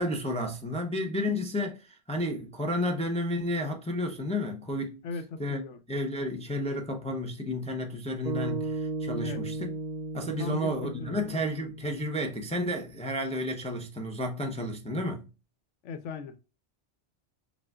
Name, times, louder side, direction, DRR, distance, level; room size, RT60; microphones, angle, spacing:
voice 1, 0.0-5.0 5.4-5.6 5.9-9.7 10.1-15.3, left 1 dB, 10° left, 0.4 m, -32 dB
voice 2, 5.0-5.8 9.2-9.4 10.4-11.2 15.8-16.3, left 3 dB, 90° left, 1.0 m, -37 dB
sound 1, 8.2-12.6, right 3 dB, 45° right, 0.7 m, -36 dB
6.0 x 2.4 x 2.3 m
omnidirectional pair, 1.2 m